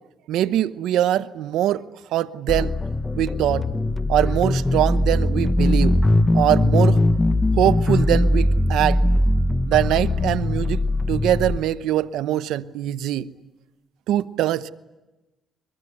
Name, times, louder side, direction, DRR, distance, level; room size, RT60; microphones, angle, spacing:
voice 1, 0.3-1.9 2.1-2.7 3.1-3.7 4.1-6.0 6.3-7.0 7.5-9.0 9.7-13.3 14.1-14.7, right 12 dB, 85° right, 0.9 m, -22 dB
sound 1, 2.5-11.6, left 1 dB, 15° left, 1.0 m, -20 dB
23.0 x 23.0 x 9.8 m
cardioid pair, 90°, 0 cm